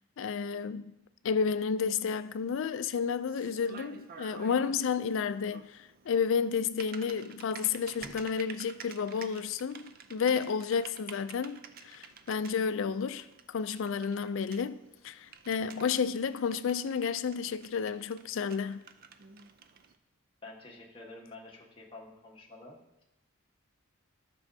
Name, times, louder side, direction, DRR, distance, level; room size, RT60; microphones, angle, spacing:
voice 1, 0.2-0.9 1.2-14.8 15.0-18.8, left 6 dB, 60° left, 0.4 m, -31 dB
Typing, 1.9-20.0, right 6 dB, 45° right, 0.5 m, -52 dB
sound 1, 5.8-5.9 7.8-8.7 10.3-11.2, equal, 10° right, 0.9 m, -56 dB
voice 2, 20.4-23.0, left 2 dB, 25° left, 1.3 m, -49 dB
13.0 x 6.2 x 2.7 m
head